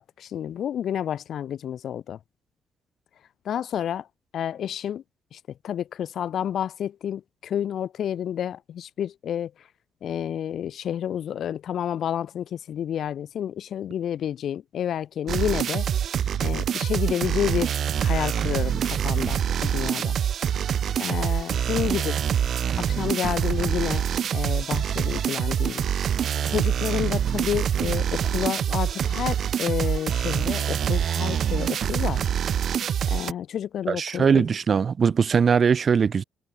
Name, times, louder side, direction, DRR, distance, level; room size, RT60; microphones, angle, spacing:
voice 1, 0.0-2.2 3.4-4.1 4.3-5.0 5.3-9.5 10.0-15.9 16.4-17.7 18.0-20.2 21.0-22.2 22.8-24.1 24.3-25.9 26.5-32.2 33.1-34.5, left 9 dB, 65° left, 0.6 m, -30 dB
sound 1, 15.3-33.3, right 9 dB, 60° right, 1.4 m, -25 dB
voice 2, 33.9-36.2, right 6 dB, 45° right, 1.9 m, -20 dB
cardioid pair, 90°, 0 cm